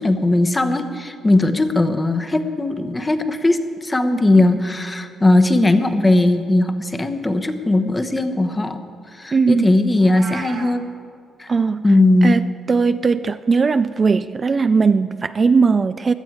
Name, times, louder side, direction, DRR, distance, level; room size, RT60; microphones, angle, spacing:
voice 1, 0.0-8.8 9.2-10.8 11.4-11.5 11.8-12.4, left 2 dB, 20° left, 1.0 m, -18 dB
voice 2, 9.3-9.7 11.5-11.8 12.2-16.1, right 4 dB, 35° right, 0.3 m, -18 dB
Meow, 9.9-10.8, right 6 dB, 80° right, 1.1 m, -34 dB
16.5 x 11.5 x 4.8 m
cardioid pair, 90°, 0 cm